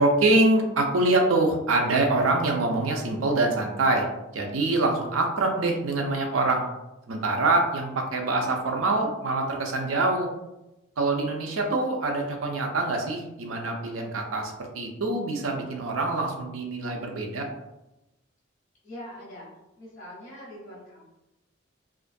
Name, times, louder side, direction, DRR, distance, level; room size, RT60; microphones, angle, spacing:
voice 1, 0.0-4.1 4.3-6.7 7.1-10.3 11.0-17.5, right 2 dB, 85° right, 2 dB, 0.5 m, -25 dB
voice 2, 18.8-19.5 19.8-21.0, left 1 dB, 35° left, -7 dB, 1.0 m, -42 dB
2.4 x 2.2 x 2.5 m, 0.96 s
head